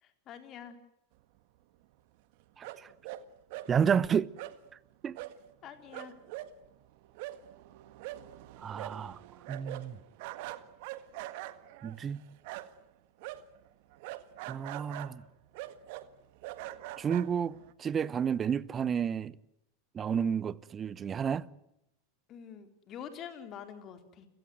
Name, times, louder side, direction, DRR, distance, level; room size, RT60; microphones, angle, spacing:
voice 1, 0.0-0.8 5.6-6.1 22.3-24.3, left 8 dB, 40° left, 4.2 m, -46 dB
voice 2, 2.6-2.9 3.7-4.3 5.0-5.2 8.6-9.2 9.5-10.0 11.8-12.2 14.5-15.2 17.0-19.3 19.9-21.5, right 7 dB, 25° right, 1.0 m, -31 dB
sound 1, 2.6-3.2 3.5-3.7 4.4-4.5 5.1-5.4 5.6-5.7 5.9-12.9 13.2-17.7, right 16 dB, 60° right, 1.6 m, -43 dB
29.5 x 17.5 x 9.5 m
hypercardioid pair, 95°, 0 cm